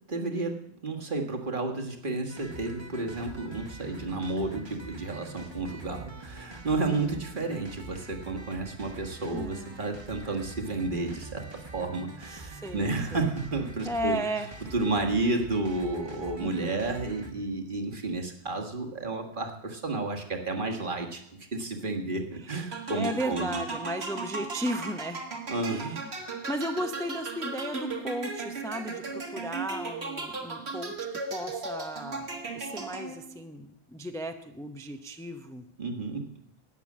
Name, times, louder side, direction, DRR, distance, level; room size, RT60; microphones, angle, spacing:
voice 1, 0.1-14.2 14.7-21.2 21.5-23.6 25.5-26.0 35.8-36.3, right 2 dB, 50° right, 2 dB, 1.7 m, -31 dB
sound 1, 2.3-17.3, right 3 dB, 25° right, 1.3 m, -45 dB
voice 2, 6.9-7.2 9.3-9.9 12.3-13.3 13.8-14.7 16.4-17.0 22.9-25.2 25.7-26.1 26.5-32.3 32.6-35.6, right 1 dB, 5° left, 7 dB, 0.6 m, -35 dB
sound 2, 22.7-33.4, right 3 dB, 65° right, 2.0 m, -36 dB
12.0 x 9.0 x 7.3 m, 0.74 s
omnidirectional pair, 1.2 m